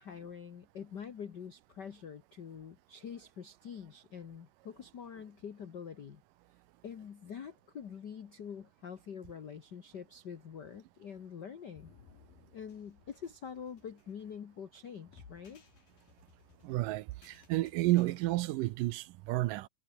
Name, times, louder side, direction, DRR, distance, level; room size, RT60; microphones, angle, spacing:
voice 1, 0.0-6.2 6.8-11.9 12.5-15.6, left 7 dB, 75° left, 0.9 m, -45 dB
sound 1, 11.8-18.2, left 6 dB, 90° left, 6.0 m, -61 dB
voice 2, 16.6-19.7, right 18 dB, 80° right, 2.3 m, -31 dB
omnidirectional pair, 3.9 m